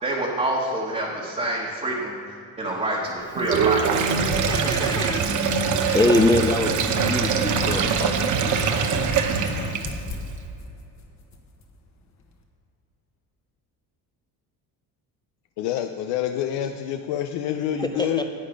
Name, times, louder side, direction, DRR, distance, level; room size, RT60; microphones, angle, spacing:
voice 1, 0.0-2.2 2.6-3.9, right 1 dB, 15° right, -5 dB, 1.3 m, -26 dB
sound 1, 2.5-12.4, left 2 dB, 45° left, 1.2 m, -42 dB
Sink (filling or washing), 3.4-10.2, right 7 dB, 50° right, 0.8 m, -24 dB
sound 2, 3.9-9.6, right 1 dB, 85° right, 2.9 m, -28 dB
voice 2, 4.2-5.2 5.7-8.2 17.8-18.3, left 2 dB, 10° left, 5 dB, 0.3 m, -24 dB
voice 3, 15.6-18.2, left 10 dB, 80° left, 6 dB, 0.6 m, -27 dB
11.0 x 8.5 x 5.1 m, 2.7 s
cardioid pair, 135°, 39 cm